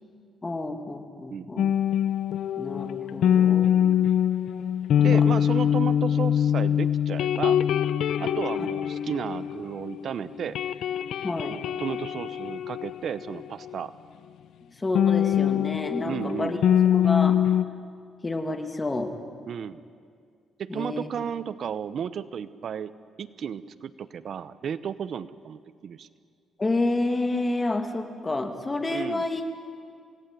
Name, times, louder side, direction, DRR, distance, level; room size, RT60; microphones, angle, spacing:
voice 1, 0.4-1.6 2.6-3.8 5.0-5.2 11.2-11.6 14.8-16.6 16.9-17.4 18.2-19.1 20.7-21.1 26.6-29.5, left 2 dB, 25° left, 6 dB, 2.5 m, -29 dB
voice 2, 1.3-1.7 3.8-4.1 5.0-7.6 8.2-10.6 11.8-13.9 16.0-16.6 19.5-19.8 20.6-26.1 28.9-29.2, right 8 dB, 60° right, 15 dB, 0.8 m, -33 dB
sound 1, 1.6-10.0 10.3-13.8 14.9-17.6, left 9 dB, 75° left, 0.8 m, -24 dB
28.0 x 18.5 x 9.3 m, 2.2 s
cardioid pair, 95°, 0 cm